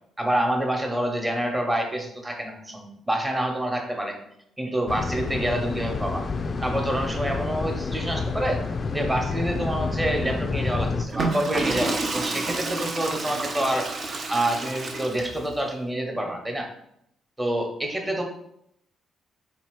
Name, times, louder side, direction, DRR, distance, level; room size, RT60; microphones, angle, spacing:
voice 1, 0.2-4.2 4.6-6.2 6.6-8.6 8.9-13.9 14.3-16.7 17.4-18.2, right 1 dB, 15° right, 2 dB, 1.0 m, -27 dB
sound 1, 4.9-11.1, left 4 dB, 40° left, 0.4 m, -29 dB
Water / Toilet flush, 11.0-15.5, right 3 dB, 45° right, 0.6 m, -29 dB
3.9 x 2.8 x 4.6 m, 0.73 s
cardioid pair, 90°, 0 cm